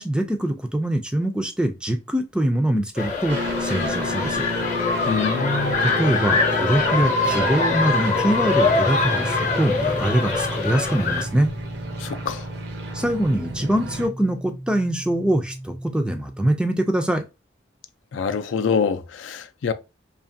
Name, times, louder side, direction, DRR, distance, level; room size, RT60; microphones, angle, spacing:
voice 1, 0.0-4.5 5.8-11.5 12.9-17.2, right 1 dB, 5° right, 0.3 m, -23 dB
sound 1, 3.0-11.2, left 4 dB, 40° left, 0.7 m, -23 dB
sound 2, 3.3-14.1, equal, 60° right, 0.6 m, -31 dB
voice 2, 5.1-5.8 12.0-12.4 18.1-19.7, left 5 dB, 85° left, 0.4 m, -25 dB
sound 3, 7.2-17.0, right 1 dB, 90° right, 0.8 m, -39 dB
2.8 x 2.3 x 2.6 m
head